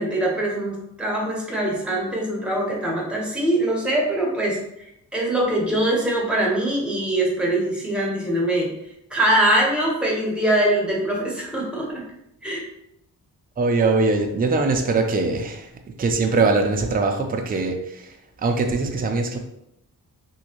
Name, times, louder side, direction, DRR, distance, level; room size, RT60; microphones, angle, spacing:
voice 1, 0.0-4.6 5.1-8.7 9.1-12.0 12.4-12.6, right 1 dB, 5° right, -3 dB, 1.0 m, -23 dB
voice 2, 13.6-15.7 16.0-19.4, right 3 dB, 25° right, 3 dB, 0.4 m, -22 dB
3.0 x 2.7 x 2.9 m, 0.79 s
cardioid pair, 95°, 36 cm